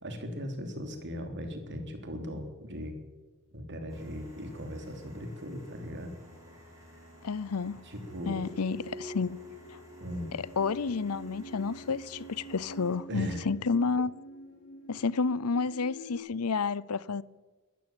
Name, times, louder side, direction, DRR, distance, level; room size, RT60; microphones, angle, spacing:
voice 1, 0.0-3.0 3.5-6.1 6.8-7.0 7.8-8.4 10.0-10.3 13.1-13.4, equal, 55° right, 3.4 m, -38 dB
sound 1, 3.9-13.0, left 1 dB, 15° right, 7.6 m, -54 dB
voice 2, 7.2-7.8 8.3-9.4 10.6-14.1 14.9-17.2, left 4 dB, 85° left, 0.7 m, -30 dB
sound 2, 8.0-16.2, right 1 dB, 65° left, 4.3 m, -47 dB
21.0 x 14.0 x 9.1 m
head